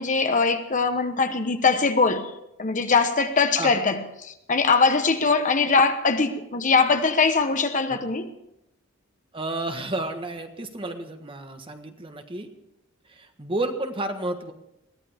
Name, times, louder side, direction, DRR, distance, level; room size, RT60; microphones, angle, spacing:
voice 1, 0.0-2.3 2.6-8.3, left 4 dB, 40° left, 1.0 m, -22 dB
voice 2, 9.3-12.5 13.1-14.5, right 2 dB, 25° right, 1.4 m, -31 dB
22.0 x 16.5 x 3.5 m
head